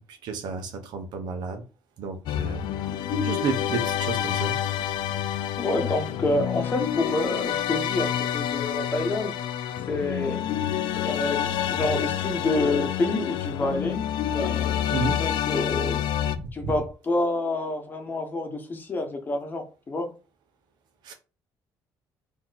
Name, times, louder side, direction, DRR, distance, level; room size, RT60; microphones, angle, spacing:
voice 1, 0.1-1.6 2.0-2.6 3.1-4.5 14.9-15.2 16.6-16.7 21.0-21.1, right 4 dB, 70° right, 6 dB, 1.1 m, -31 dB
sound 1, 2.3-16.4, left 10 dB, 75° left, 0.5 m, -28 dB
voice 2, 5.5-9.3 9.9-10.4 10.9-14.0 14.3-16.0 16.5-20.1, left 2 dB, 25° left, 4 dB, 1.0 m, -28 dB
4.2 x 3.0 x 4.0 m, 0.33 s
cardioid pair, 135°, 8 cm